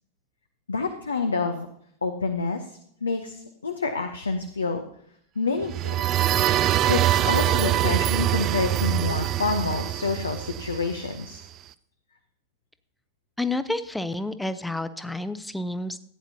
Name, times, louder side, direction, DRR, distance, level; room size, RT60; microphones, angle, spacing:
voice 1, 0.7-1.7 2.0-2.6 3.0-4.8 5.4-5.9 6.2-6.3 6.9-11.4, left 4 dB, 75° left, 6 dB, 0.8 m, -28 dB
sound 1, 5.6-11.4, right 13 dB, 35° right, 0.4 m, -24 dB
voice 2, 13.4-16.0, left 2 dB, 5° left, 13 dB, 0.6 m, -29 dB
15.5 x 9.3 x 2.8 m, 0.68 s
figure-of-eight pair, 90°, 0 cm